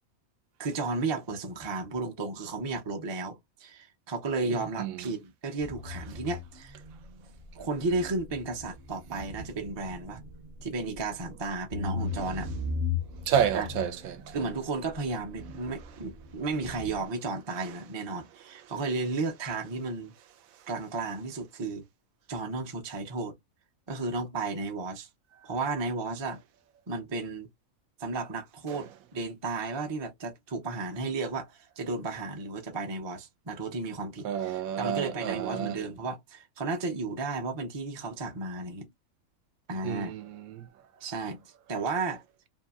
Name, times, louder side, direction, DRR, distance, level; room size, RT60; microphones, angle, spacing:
voice 1, 0.6-6.8 7.6-10.2 10.6-12.5 13.5-13.7 14.3-20.1 20.7-21.8 22.3-23.3 23.9-25.1 25.4-26.4 26.9-27.5 28.0-38.9 39.7-40.1 41.0-42.2, right 3 dB, 35° right, 0.4 m, -33 dB
sound 1, 5.6-17.1, left 4 dB, 50° right, 0.9 m, -39 dB
voice 2, 13.3-14.3 28.7-28.8 34.2-35.8 39.8-40.7, right 9 dB, 80° right, 1.0 m, -30 dB
2.8 x 2.6 x 2.3 m
omnidirectional pair, 1.4 m